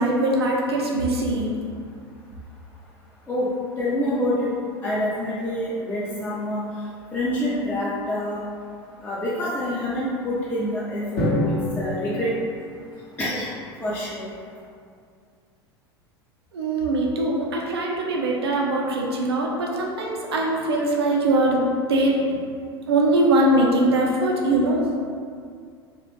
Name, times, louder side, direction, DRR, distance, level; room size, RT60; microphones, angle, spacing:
voice 1, 0.0-1.5 16.5-22.3 22.9-24.8, right 1 dB, 75° right, -2 dB, 0.4 m, -22 dB
voice 2, 3.8-4.5 4.8-6.6 7.1-8.4 9.0-11.3 11.7-12.3 13.2-13.5 13.8-14.3, left 1 dB, 15° left, -8 dB, 0.4 m, -26 dB
Drum, 11.2-13.3, left 1 dB, 60° left, 0.7 m, -27 dB
2.4 x 2.1 x 3.0 m, 2.2 s
figure-of-eight pair, 80°, 14 cm